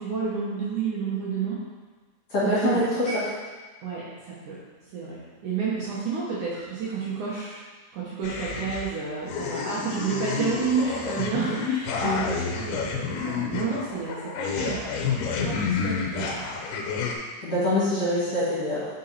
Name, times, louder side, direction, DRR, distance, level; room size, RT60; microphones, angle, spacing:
voice 1, 0.0-1.6 2.4-2.8 3.8-4.6 4.9-7.6 7.9-16.4, right 5 dB, 60° right, -8 dB, 2.3 m, -30 dB
voice 2, 2.3-3.2 12.0-12.2 17.4-18.9, left 1 dB, 45° left, -10 dB, 2.4 m, -25 dB
sound 1, 8.2-8.9 9.3-17.2, left 5 dB, 80° left, 2.7 m, -29 dB
7.3 x 5.6 x 4.1 m, 1.3 s
omnidirectional pair, 4.7 m